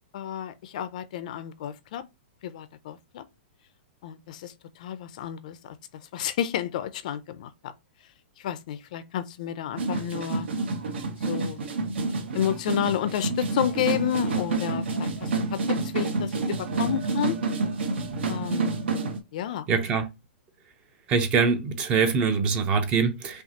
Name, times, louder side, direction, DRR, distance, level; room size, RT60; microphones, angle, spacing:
voice 1, 0.1-2.0 2.4-3.2 4.0-5.8 6.1-7.7 8.4-10.5 11.2-11.7 12.3-17.4 18.3-18.7 19.3-19.7, left 10 dB, 40° left, 0.4 m, -31 dB
sound 1, 9.8-19.2, right 3 dB, 85° right, 1.3 m, -28 dB
voice 2, 19.7-20.0 21.1-23.4, right 5 dB, 15° right, 0.4 m, -23 dB
5.7 x 2.4 x 2.8 m
hypercardioid pair, 170°, 6 cm